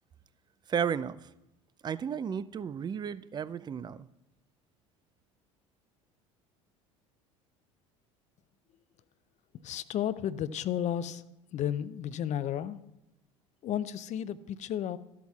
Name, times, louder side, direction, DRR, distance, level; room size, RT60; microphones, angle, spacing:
voice 1, 0.7-1.2 1.8-4.1, right 7 dB, 25° right, 0.4 m, -33 dB
voice 2, 9.6-11.2 11.5-12.8 13.6-15.0, left 10 dB, 45° left, 0.5 m, -33 dB
13.0 x 12.0 x 2.4 m
hypercardioid pair, 75°, 17 cm